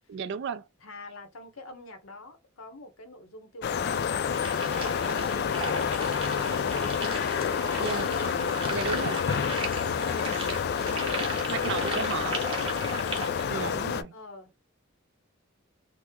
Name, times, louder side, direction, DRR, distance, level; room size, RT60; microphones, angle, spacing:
voice 1, 0.1-0.6 7.8-8.1 8.7-9.2 11.5-12.4 13.5-14.1, right 6 dB, 60° right, 0.3 m, -33 dB
voice 2, 0.8-7.3 14.1-14.7, left 2 dB, 85° left, 0.8 m, -47 dB
sound 1, 3.6-14.0, left 7 dB, 50° left, 0.3 m, -28 dB
sound 2, 4.3-13.5, right 3 dB, 25° right, 0.9 m, -37 dB
3.0 x 2.0 x 3.4 m
head